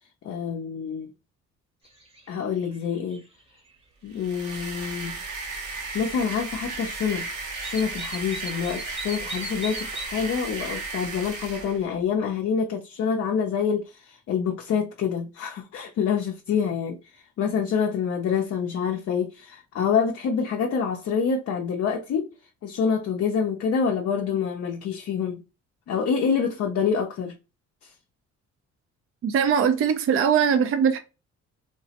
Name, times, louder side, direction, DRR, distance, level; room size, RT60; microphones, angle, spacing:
voice 1, 0.2-1.1 2.3-3.2 4.0-5.2 5.9-7.3 7.6-22.3 22.6-25.4 25.9-27.3 27.8-27.9, left 6 dB, 55° left, 0.5 m, -26 dB
sound 1, 1.8-2.3 2.6-3.7 5.3-5.4 5.9-6.9 7.1-7.2 7.6-10.1, right 1 dB, 20° right, 0.8 m, -39 dB
sound 2, 4.1-11.8, right 3 dB, 75° right, 0.9 m, -35 dB
voice 2, 29.2-31.0, right 7 dB, 45° right, 0.4 m, -21 dB
3.2 x 2.0 x 2.7 m
cardioid pair, 90°, 30 cm